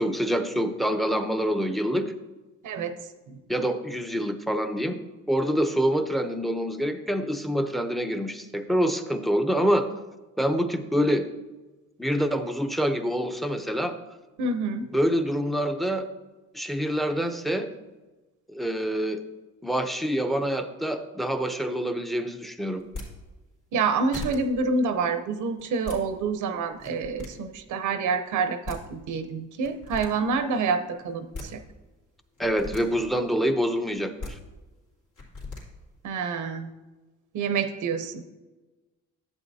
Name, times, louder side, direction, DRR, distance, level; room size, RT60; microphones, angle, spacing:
voice 1, 0.0-2.1 3.5-5.0 5.3-9.9 10.4-11.3 12.0-14.0 14.9-16.1 16.5-17.7 18.5-19.2 19.6-22.8 32.4-34.4, equal, ahead, 8 dB, 0.6 m, -26 dB
voice 2, 2.6-3.0 3.3-3.4 14.4-14.9 23.7-31.6 36.0-36.7 37.3-38.2, right 4 dB, 80° right, 8 dB, 0.8 m, -27 dB
sound 1, 22.8-23.1 23.8-23.9 24.1-24.4 25.6-26.0 26.7-27.3 28.4-28.5 28.6-28.8 29.6-30.1 31.1-31.5 32.4-32.8 34.0-34.3 35.2-35.6, left 3 dB, 75° left, 2.8 m, -37 dB
10.5 x 8.1 x 2.7 m, 1.2 s
cardioid pair, 90°, 30 cm